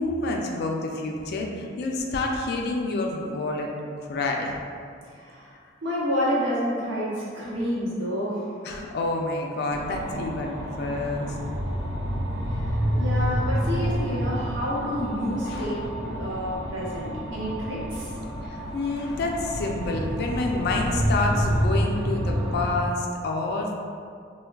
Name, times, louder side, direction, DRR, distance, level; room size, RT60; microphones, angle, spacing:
voice 1, 0.0-3.7 4.1-4.5 8.6-11.4 15.4-15.8 18.4-23.7, left 2 dB, 55° left, 1 dB, 0.3 m, -28 dB
voice 2, 5.1-5.5 5.8-8.4 12.5-18.1, equal, 85° right, -8 dB, 0.9 m, -29 dB
sound 1, 9.7-22.7, equal, 60° right, 0.5 m, -28 dB
3.4 x 2.2 x 2.3 m, 2.3 s
head